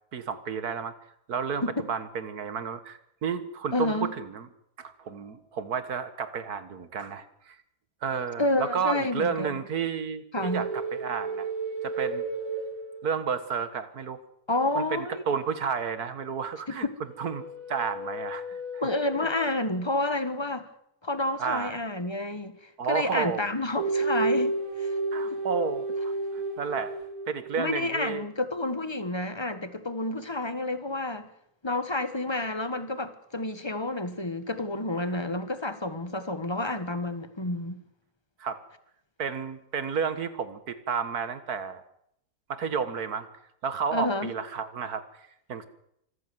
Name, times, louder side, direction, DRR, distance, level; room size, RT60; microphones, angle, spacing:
voice 1, 0.1-0.9 1.3-1.6 1.9-4.5 4.8-7.6 8.0-11.5 11.8-12.2 13.0-14.2 14.8-16.9 17.2-17.4 17.7-18.8 21.4-21.8 22.8-23.5 25.1-26.9 27.3-28.2 38.4-38.6 39.2-41.8 42.5-43.3 43.6-45.7, right 6 dB, 85° right, 2.0 m, -31 dB
voice 2, 3.7-4.1 8.4-9.5 10.3-10.6 14.5-15.1 16.7-16.9 18.8-20.7 21.0-22.6 22.9-24.9 25.3-25.4 27.6-31.3 31.6-37.8 43.9-44.3, left 2 dB, 20° left, 1.4 m, -29 dB
sound 1, 10.4-13.5 17.1-19.7 23.8-27.6, right 3 dB, 60° right, 2.7 m, -32 dB
25.5 x 14.5 x 7.9 m
omnidirectional pair, 1.6 m